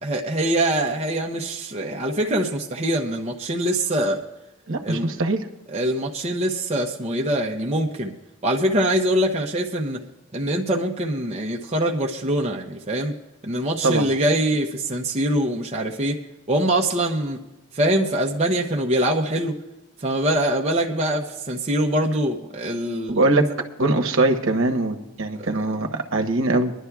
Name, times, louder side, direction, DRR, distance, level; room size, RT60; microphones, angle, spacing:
voice 1, 0.0-4.2 4.8-5.1 5.7-8.1 8.4-10.0 10.3-13.1 13.4-16.2 16.5-17.4 17.7-19.6 20.0-23.2 25.4-25.5, right 1 dB, 30° right, 0 dB, 0.6 m, -23 dB
voice 2, 4.7-5.4 13.8-14.0 23.1-23.5 23.8-26.7, right 2 dB, 65° right, 4 dB, 1.0 m, -21 dB
24.5 x 11.0 x 2.3 m, 1.0 s
head